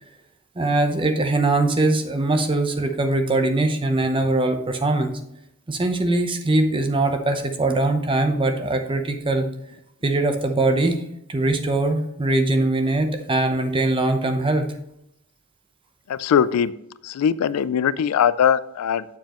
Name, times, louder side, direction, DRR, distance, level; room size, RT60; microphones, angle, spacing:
voice 1, 0.6-5.1 5.7-9.5 10.0-11.0 11.3-14.7, right 2 dB, 25° right, 6 dB, 0.7 m, -21 dB
voice 2, 16.1-16.7 17.0-19.1, left 8 dB, 75° left, 17 dB, 0.3 m, -20 dB
7.4 x 6.9 x 3.0 m, 0.81 s
head